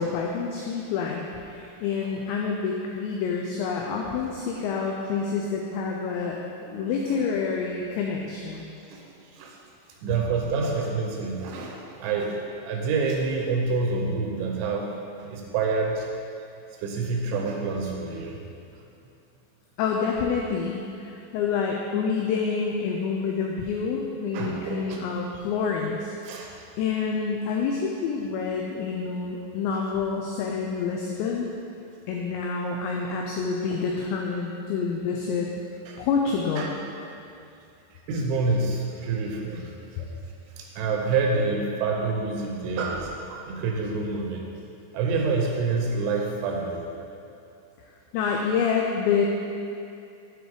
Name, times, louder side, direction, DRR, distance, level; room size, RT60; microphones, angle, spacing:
voice 1, 0.0-8.6 19.8-26.1 26.8-31.5 32.1-35.5 36.0-36.7 48.1-49.3, left 5 dB, 90° left, 0 dB, 2.5 m, -27 dB
voice 2, 8.9-9.6 10.0-16.1 16.8-18.5 24.3-25.0 26.2-26.5 35.9-36.1 36.6-36.7 38.1-40.1 40.6-44.4 44.9-46.8, right 4 dB, 80° right, 0 dB, 2.9 m, -27 dB
7.8 x 5.1 x 4.9 m, 2.6 s
omnidirectional pair, 5.7 m